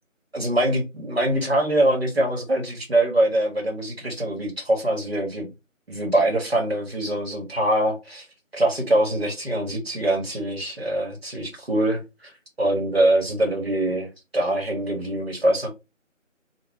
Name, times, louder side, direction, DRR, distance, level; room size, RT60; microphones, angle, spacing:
voice 1, 0.3-5.5 5.9-8.3 8.5-12.3 12.6-15.7, right 1 dB, 50° right, 1.2 m, -23 dB
3.3 x 2.3 x 3.6 m
figure-of-eight pair, 170°, 39 cm